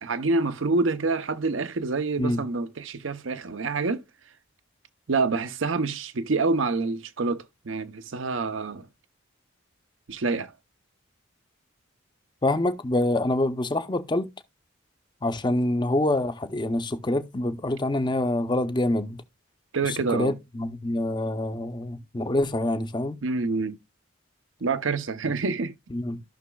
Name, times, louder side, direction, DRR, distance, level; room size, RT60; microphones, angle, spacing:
voice 1, 0.0-4.0 5.1-8.9 10.1-10.5 19.7-20.4 23.2-23.8 24.6-25.7, right 3 dB, 70° right, 0.7 m, -27 dB
voice 2, 12.4-14.3 15.2-19.2 19.8-23.2 25.9-26.2, left 1 dB, 20° left, 0.6 m, -26 dB
14.0 x 6.0 x 2.3 m
head